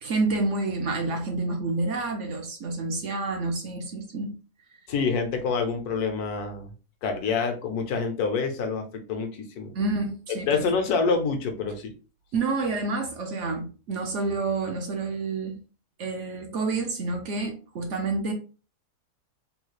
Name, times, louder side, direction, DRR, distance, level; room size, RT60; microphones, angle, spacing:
voice 1, 0.0-4.3 9.8-10.6 12.3-15.6 16.0-18.3, right 3 dB, 65° right, 0.7 m, -28 dB
voice 2, 4.9-6.7 7.0-9.7 10.5-11.9, left 5 dB, 70° left, 1.2 m, -27 dB
3.5 x 2.3 x 3.1 m
omnidirectional pair, 1.8 m